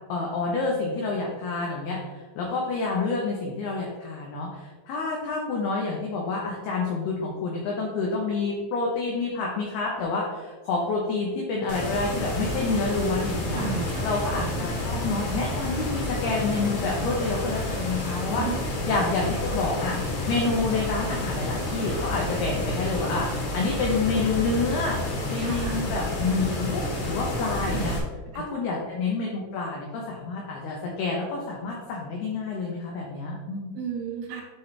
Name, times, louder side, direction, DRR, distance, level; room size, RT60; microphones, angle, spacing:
voice 1, 0.1-2.0 2.4-13.7 14.0-18.5 18.9-20.0 20.3-23.3 23.5-25.0 25.3-27.9 28.3-33.8, left 3 dB, 85° left, -2 dB, 2.2 m, -28 dB
sound 1, 11.7-28.0, left 1 dB, 60° left, 3.0 m, -30 dB
voice 2, 13.5-14.0 14.4-14.6 18.3-18.7 25.4-25.8 27.6-27.9 33.8-34.4, right 6 dB, 80° right, -2 dB, 4.0 m, -33 dB
11.0 x 4.1 x 3.3 m, 1.3 s
omnidirectional pair, 5.9 m